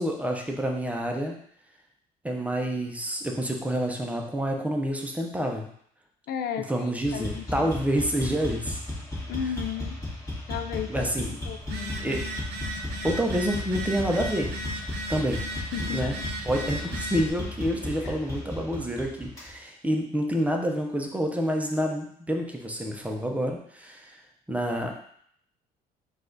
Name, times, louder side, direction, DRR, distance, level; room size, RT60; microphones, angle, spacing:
voice 1, 0.0-1.4 2.2-5.7 6.6-8.8 10.9-11.4 12.0-12.2 13.0-14.5 15.1-15.4 15.8-16.2 16.4-24.2 24.5-24.9, equal, 10° right, 1 dB, 0.7 m, -28 dB
voice 2, 6.3-7.7 9.3-10.0 10.5-11.1 11.5-12.1 15.7-16.0 18.0-18.1, left 8 dB, 65° left, 7 dB, 0.4 m, -34 dB
sound 1, 7.0-19.5, left 1 dB, 20° left, 1.6 m, -35 dB
Telephone, 11.6-17.3, right 1 dB, 85° right, 0.7 m, -36 dB
4.7 x 2.5 x 3.9 m, 0.65 s
cardioid pair, 110°, 17 cm